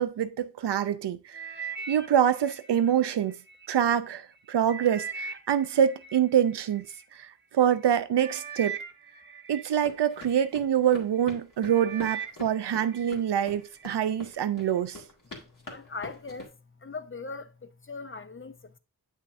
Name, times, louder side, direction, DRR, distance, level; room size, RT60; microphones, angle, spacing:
voice 1, 0.0-1.4 1.9-3.4 3.7-6.9 7.1-7.3 7.5-8.8 9.5-15.0, right 9 dB, 85° right, 0.6 m, -25 dB
sound 1, 1.3-3.7 4.2-7.0 7.7-7.9 8.1-10.5 11.0-11.3 11.6-13.1 13.5-14.0 14.6-14.7, right 6 dB, 25° right, 1.0 m, -40 dB
sound 2, 9.8-16.5, left 3 dB, 50° left, 1.8 m, -45 dB
voice 2, 15.4-18.8, left 4 dB, 30° left, 0.6 m, -40 dB
8.1 x 5.8 x 2.5 m
wide cardioid pair, 70°, 40 cm